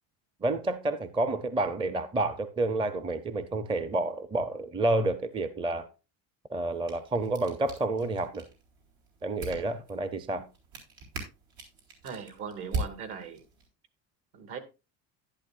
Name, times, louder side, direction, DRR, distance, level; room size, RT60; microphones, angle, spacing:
voice 1, 0.4-5.9 6.5-8.5 9.2-10.5, right 2 dB, 10° right, 0.5 m, -29 dB
sound 1, 6.6-13.7, right 3 dB, 80° right, 3.9 m, -41 dB
voice 2, 12.0-13.5 14.3-14.6, right 6 dB, 65° right, 2.3 m, -39 dB
11.5 x 10.5 x 2.4 m
cardioid pair, 125°, 43 cm